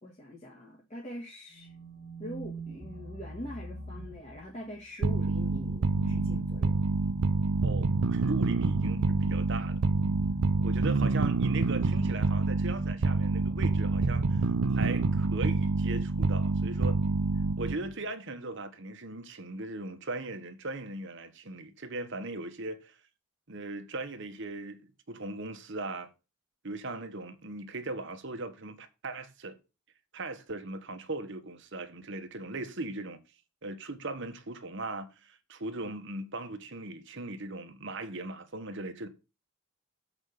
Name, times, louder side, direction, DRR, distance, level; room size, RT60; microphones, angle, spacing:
voice 1, 0.0-1.7 2.2-6.8, equal, 30° left, 1.7 m, -43 dB
sound 1, 1.5-4.8 5.5-12.1 13.1-15.0, right 1 dB, 40° right, 1.7 m, -45 dB
sound 2, 5.0-17.9, right 3 dB, 85° right, 0.7 m, -27 dB
voice 2, 7.6-9.8 10.6-17.0 17.6-23.0 23.5-24.8 25.1-26.1 26.6-29.6 30.1-33.2 33.6-39.1, right 2 dB, 55° right, 1.2 m, -39 dB
7.4 x 5.0 x 6.5 m
head